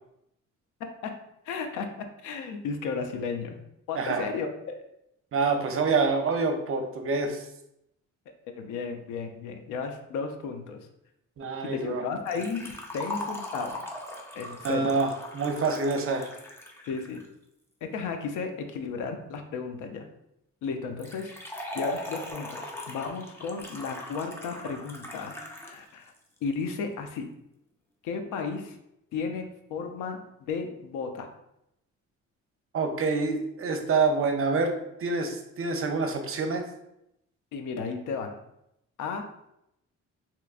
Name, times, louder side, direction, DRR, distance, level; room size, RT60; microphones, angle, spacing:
voice 1, 1.5-1.9 2.2-3.6 3.9-4.8 8.6-10.9 11.7-13.8 14.3-15.0 16.9-17.2 17.9-20.1 20.6-21.3 21.7-26.1 26.4-27.3 28.0-28.8 29.1-31.3 37.5-38.4 39.0-39.3, left 5 dB, 90° left, 5 dB, 0.5 m, -34 dB
voice 2, 4.0-4.3 5.3-7.4 11.4-12.0 14.6-16.3 32.7-34.7 35.0-36.6, right 4 dB, 45° right, 4 dB, 0.6 m, -27 dB
Liquid, 12.3-17.3 21.0-25.8 26.1-26.2 27.1-27.2, left 1 dB, 10° left, 0.5 m, -39 dB
3.4 x 2.9 x 2.4 m, 0.82 s
cardioid pair, 90°, 30 cm